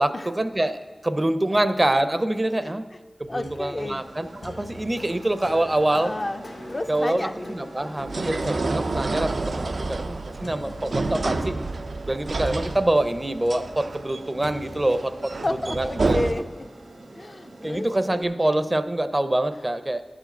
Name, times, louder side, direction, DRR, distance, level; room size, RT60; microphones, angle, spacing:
voice 1, 0.0-2.9 3.2-6.1 6.9-11.6 12.0-16.3 17.6-20.0, right 1 dB, 25° right, 11 dB, 0.5 m, -25 dB
sound 1, 3.2-16.1, left 1 dB, 80° left, 0.8 m, -44 dB
voice 2, 3.2-4.0 5.9-6.4 6.7-7.7 10.4-10.8 15.4-16.7 17.2-18.2, left 1 dB, 40° left, 8 dB, 0.4 m, -31 dB
sound 2, 3.8-16.3, right 3 dB, 85° right, 0.4 m, -30 dB
Aircraft, 4.0-18.2, right 1 dB, 60° right, 0.8 m, -46 dB
11.0 x 5.0 x 7.8 m, 1.4 s
wide cardioid pair, 80°, 0 cm